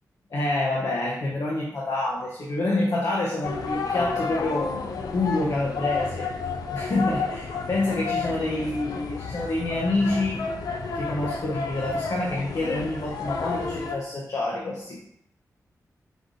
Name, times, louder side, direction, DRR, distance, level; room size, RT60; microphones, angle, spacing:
voice 1, 0.3-4.8 5.1-6.3 6.7-10.4 10.9-15.0, left 2 dB, 65° left, -3 dB, 0.9 m, -27 dB
sound 1, 3.4-14.0, left 4 dB, 80° left, 0.5 m, -31 dB
5.3 x 2.6 x 3.8 m, 0.75 s
cardioid pair, 60°, 6 cm